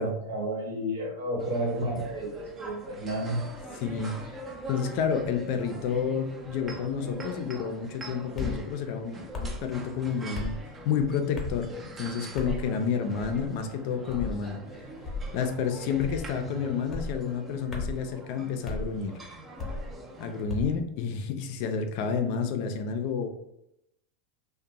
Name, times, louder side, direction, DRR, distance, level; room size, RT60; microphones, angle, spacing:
voice 1, 0.0-3.4, right 1 dB, 85° right, -1 dB, 1.0 m, -31 dB
sound 1, 1.4-20.4, right 1 dB, 20° right, 0.5 m, -44 dB
voice 2, 3.7-4.3 4.7-10.6 10.8-14.6 15.3-19.2 20.2-23.3, left 6 dB, 60° left, 6 dB, 0.4 m, -30 dB
sound 2, 8.4-8.6 9.3-9.6 10.3-10.6 11.3-11.6 12.4-12.6 13.2-13.5 14.1-14.4 15.0-15.3 16.0-16.3 16.9-17.2 17.7-18.0 18.6-18.9 19.6-19.9 20.5-20.8, left 3 dB, 25° left, 0.8 m, -34 dB
2.5 x 2.1 x 2.9 m, 0.82 s
hypercardioid pair, 115°, 0 cm